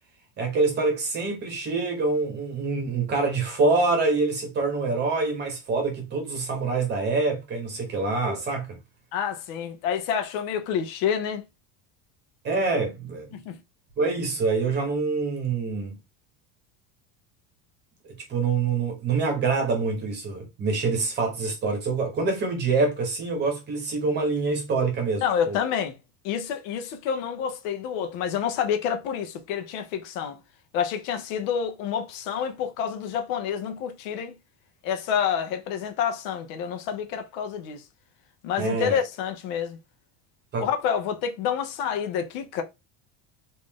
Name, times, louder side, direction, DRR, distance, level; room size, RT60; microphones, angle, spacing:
voice 1, 0.4-8.8 12.4-13.3 14.0-16.0 18.3-25.6 38.6-39.0 40.5-40.7, right 3 dB, 25° right, 1.0 m, -25 dB
voice 2, 9.1-11.4 13.3-13.6 25.2-26.0 26.2-30.4 30.7-34.3 34.8-37.8 38.4-39.8 40.6-42.6, left 8 dB, 60° left, 0.7 m, -28 dB
3.2 x 2.6 x 3.5 m
cardioid pair, 180°, 45 cm